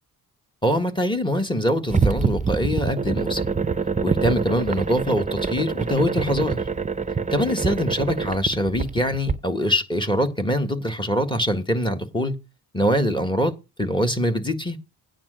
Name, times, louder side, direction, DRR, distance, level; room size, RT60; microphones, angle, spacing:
voice 1, 0.6-3.4 4.0-6.6 7.3-12.3 12.7-13.5 13.8-14.8, equal, 10° left, 1.7 m, -23 dB
sound 1, 1.9-9.3, right 5 dB, 20° right, 0.7 m, -25 dB
9.3 x 5.1 x 7.7 m
cardioid pair, 90°, 38 cm